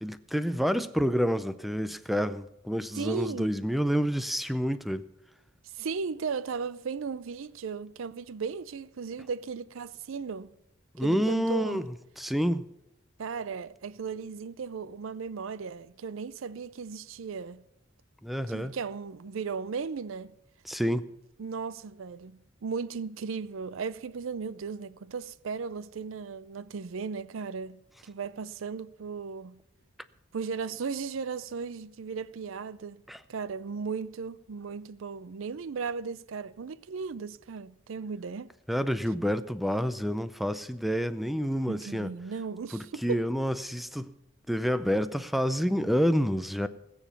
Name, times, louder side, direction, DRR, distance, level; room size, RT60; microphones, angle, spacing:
voice 1, 0.0-5.0 10.9-12.7 18.2-18.8 20.6-21.1 33.1-33.2 38.7-42.1 42.7-44.1 44.5-46.7, equal, ahead, 0.5 m, -28 dB
voice 2, 3.0-3.5 5.7-10.5 11.0-11.9 13.2-17.6 18.5-20.3 21.4-27.8 28.1-29.6 30.3-33.0 33.3-38.5 41.7-43.2, right 5 dB, 70° right, 0.5 m, -36 dB
20.0 x 7.2 x 5.7 m
head